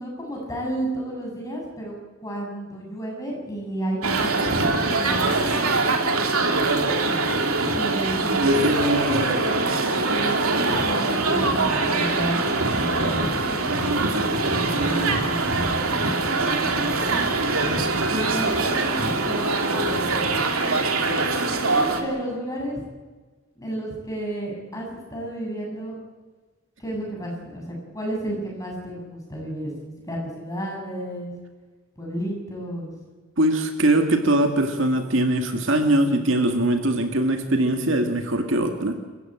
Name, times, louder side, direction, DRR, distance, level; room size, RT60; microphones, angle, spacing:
voice 1, 0.0-2.0 2.2-5.4 5.7-5.8 7.7-9.7 10.1-15.8 16.0-17.4 18.1-19.4 19.8-20.3 21.5-22.8 23.6-25.9 26.8-31.3 32.0-32.9, right 1 dB, 15° left, -1 dB, 7.5 m, -32 dB
sound 1, 4.0-22.0, right 3 dB, 80° right, 2.9 m, -23 dB
voice 2, 8.4-9.6 17.9-18.3 33.4-39.0, right 1 dB, 60° right, 5 dB, 2.2 m, -22 dB
27.5 x 15.5 x 9.0 m, 1.3 s
head